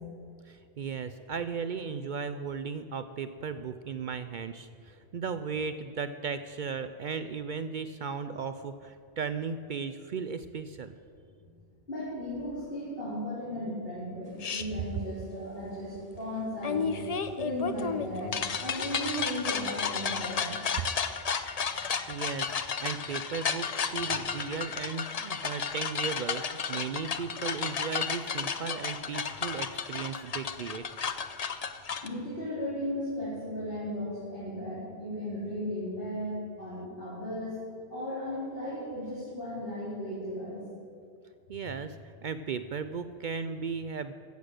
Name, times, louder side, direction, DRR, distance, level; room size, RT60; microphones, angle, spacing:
voice 1, 0.5-10.9 22.1-26.4 26.7-30.8 41.5-44.1, right 5 dB, 60° right, 10 dB, 0.6 m, -36 dB
voice 2, 11.9-16.9 17.3-20.5 32.0-37.6 37.9-40.6, equal, 60° left, -10 dB, 4.2 m, -36 dB
sound 1, 14.4-14.6 16.6-32.1, left 6 dB, 45° left, 0.6 m, -33 dB
15.0 x 8.1 x 6.5 m, 2.4 s
omnidirectional pair, 1.1 m